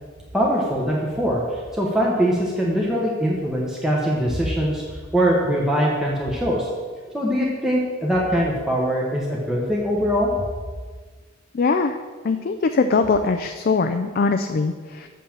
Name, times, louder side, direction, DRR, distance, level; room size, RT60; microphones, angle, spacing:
voice 1, 0.3-4.8 5.1-6.7 7.1-10.3, equal, 5° right, -4 dB, 1.0 m, -22 dB
voice 2, 11.5-12.0 12.2-15.1, left 4 dB, 45° left, 7 dB, 0.4 m, -21 dB
7.4 x 5.5 x 7.1 m, 1.5 s
head